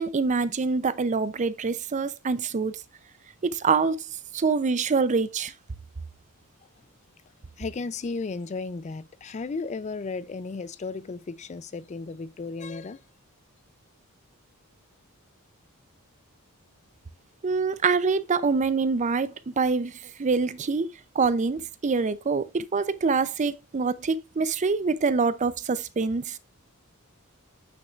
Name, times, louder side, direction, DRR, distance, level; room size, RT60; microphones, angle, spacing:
voice 1, 0.0-2.8 3.4-4.1 4.3-5.5 17.4-26.4, right 4 dB, 35° right, 0.4 m, -25 dB
voice 2, 7.6-13.0, left 4 dB, 30° left, 0.4 m, -34 dB
8.6 x 6.3 x 2.4 m
head